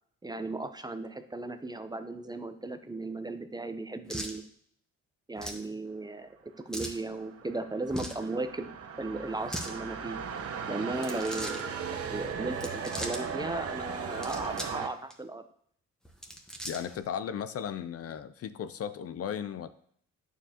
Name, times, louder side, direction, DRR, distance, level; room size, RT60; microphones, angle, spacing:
voice 1, 0.2-4.4 5.3-8.7 9.0-10.2 10.7-15.4, right 2 dB, 15° right, 9 dB, 0.6 m, -36 dB
sound 1, 4.1-4.4 5.4-5.6 6.7-7.0 7.8-8.2 9.3-9.7 10.9-11.6 12.5-13.2 14.0-14.8 15.1-15.2 16.0-17.0, equal, ahead, 1.2 m, -39 dB
sound 2, 6.9-14.9, right 6 dB, 50° right, 1.0 m, -37 dB
voice 2, 16.7-19.7, left 8 dB, 50° left, 12 dB, 0.5 m, -36 dB
8.8 x 7.0 x 2.9 m, 0.63 s
cardioid pair, 90°, 30 cm